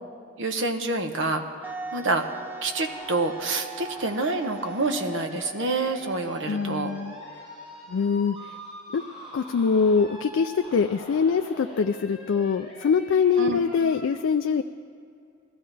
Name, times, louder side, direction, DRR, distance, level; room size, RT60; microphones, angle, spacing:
voice 1, 0.4-2.3 2.6-6.9 13.4-13.6, right 2 dB, 80° right, 6 dB, 1.0 m, -27 dB
Wind instrument woodwind instrument, 1.6-7.2, right 4 dB, 10° right, 0.5 m, -41 dB
sound 1, 2.7-14.1, right 1 dB, 30° right, 4.2 m, -43 dB
voice 2, 6.5-7.1 7.9-8.6 8.9-9.0 9.3-14.6, left 5 dB, 85° left, 7 dB, 0.4 m, -23 dB
20.5 x 14.0 x 3.4 m, 2.4 s
head